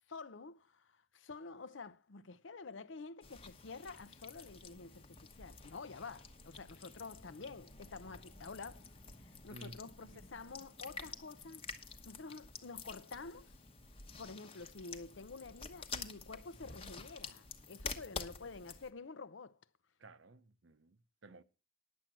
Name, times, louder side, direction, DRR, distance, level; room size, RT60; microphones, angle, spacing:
voice 1, 0.1-11.7 12.0-13.5 14.2-19.6, left 4 dB, 65° left, 0.7 m, -49 dB
sound 1, 3.2-18.9, left 4 dB, 30° left, 1.0 m, -49 dB
voice 2, 9.5-10.2 20.0-21.4, right 2 dB, 65° right, 0.8 m, -55 dB
10.5 x 7.8 x 6.0 m
head